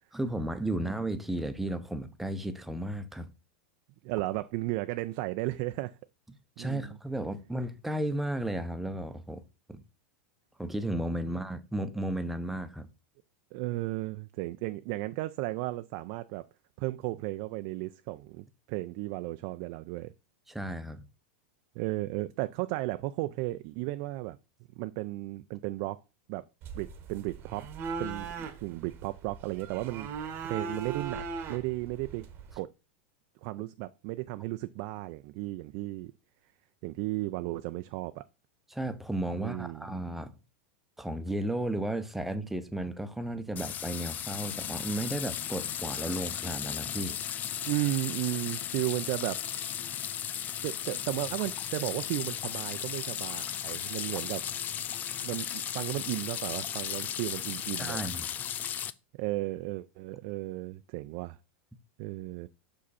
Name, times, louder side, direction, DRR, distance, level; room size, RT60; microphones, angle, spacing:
voice 1, 0.1-3.3 6.6-9.4 9.7-9.8 10.6-12.9 20.5-21.0 38.7-40.3 41.0-47.2 57.8-58.3, right 1 dB, 5° right, 0.6 m, -34 dB
voice 2, 4.0-6.0 6.6-7.0 13.5-16.5 16.8-20.1 21.8-24.4 24.8-26.0 26.3-26.4 26.7-27.7 28.0-30.1 30.4-31.2 31.5-32.3 32.6-32.7 33.4-36.1 36.8-38.2 39.4-39.9 47.7-49.4 50.6-54.4 55.2-58.1 59.2-61.4 62.0-62.5, right 19 dB, 50° right, 0.4 m, -34 dB
sound 1, 26.6-32.6, right 5 dB, 35° right, 0.9 m, -39 dB
sound 2, 43.6-58.9, left 10 dB, 30° left, 0.4 m, -36 dB
5.7 x 5.1 x 4.1 m
supercardioid pair, 130°, 6 cm